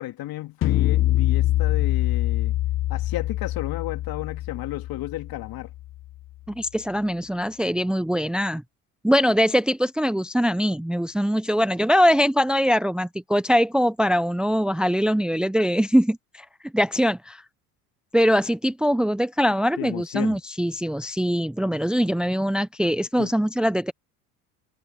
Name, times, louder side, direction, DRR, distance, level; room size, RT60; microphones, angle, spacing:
voice 1, 0.0-2.5 2.9-5.7 19.8-20.4 23.2-23.3, left 15 dB, 50° left, 3.0 m, -33 dB
sound 1, 0.6-6.0, left 15 dB, 30° left, 0.4 m, -24 dB
voice 2, 6.5-8.6 9.0-16.5 16.7-17.4 18.1-23.9, equal, ahead, 0.9 m, -22 dB
hypercardioid pair, 80°, 45 cm